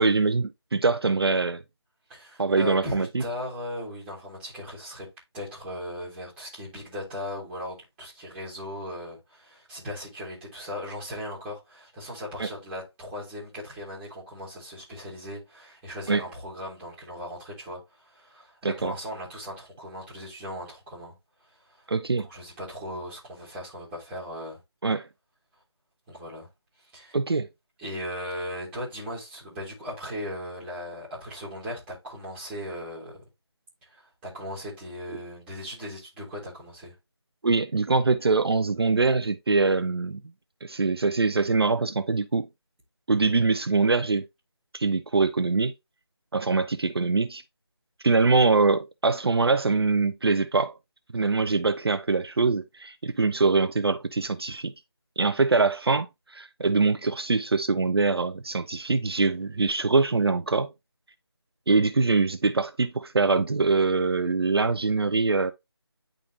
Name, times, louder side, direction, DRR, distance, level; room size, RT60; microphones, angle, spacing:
voice 1, 0.0-1.6 2.4-3.2 12.4-12.5 16.1-16.2 18.6-18.9 21.9-22.3 24.8-25.1 27.1-27.5 37.4-40.2 40.6-42.5 43.1-44.3 44.7-45.7 46.3-47.4 48.0-50.7 51.1-54.7 55.2-60.7 61.7-65.5, right 3 dB, 60° right, 0.5 m, -23 dB
voice 2, 2.1-5.1 5.3-21.1 21.7-21.9 22.2-24.6 26.1-26.5 26.9-27.2 27.8-33.2 33.8-36.9, equal, 5° right, 1.9 m, -38 dB
10.0 x 3.8 x 2.8 m
figure-of-eight pair, 165°, 14 cm